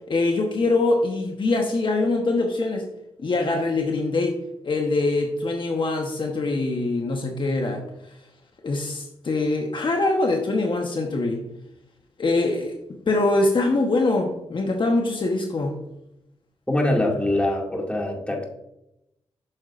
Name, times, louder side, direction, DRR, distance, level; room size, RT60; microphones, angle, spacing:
voice 1, 0.1-2.8 3.2-4.4 4.6-7.8 8.6-11.5 12.2-12.7 13.1-15.7, left 2 dB, 50° left, 2 dB, 1.1 m, -23 dB
voice 2, 16.7-18.5, left 1 dB, 10° left, 0 dB, 2.2 m, -23 dB
8.8 x 6.5 x 2.5 m, 0.84 s
cardioid pair, 75°, 11 cm